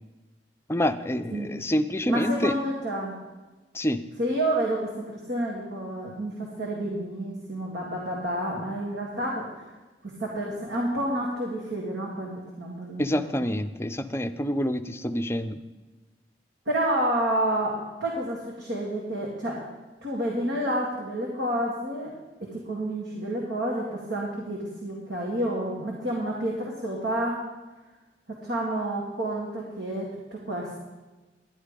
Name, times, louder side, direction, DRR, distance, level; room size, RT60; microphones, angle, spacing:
voice 1, 0.7-2.5 3.7-4.0 13.0-15.6, equal, 15° left, 9 dB, 0.5 m, -27 dB
voice 2, 2.1-3.1 4.2-9.7 10.0-13.5 16.7-19.6 20.0-22.1 22.4-27.4 28.3-30.8, right 1 dB, 90° right, -3 dB, 2.1 m, -29 dB
11.5 x 10.0 x 5.1 m, 1.2 s
head